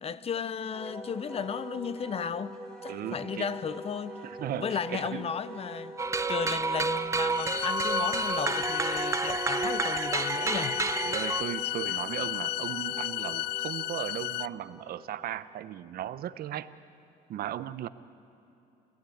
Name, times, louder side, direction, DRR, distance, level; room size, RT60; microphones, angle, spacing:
voice 1, 0.0-4.2 4.5-5.9 6.3-10.8, left 7 dB, 35° left, 0.8 m, -35 dB
Wind instrument woodwind instrument, 0.7-15.4, right 1 dB, 5° left, 4.5 m, -44 dB
voice 2, 2.9-3.5 4.2-5.3 11.0-16.7 17.3-17.9, right 11 dB, 60° right, 0.9 m, -36 dB
sound 1, 6.0-11.4, right 4 dB, 15° right, 0.6 m, -30 dB
sound 2, 7.3-14.5, left 17 dB, 75° left, 0.5 m, -33 dB
28.0 x 16.0 x 9.2 m
cardioid pair, 110°, 17 cm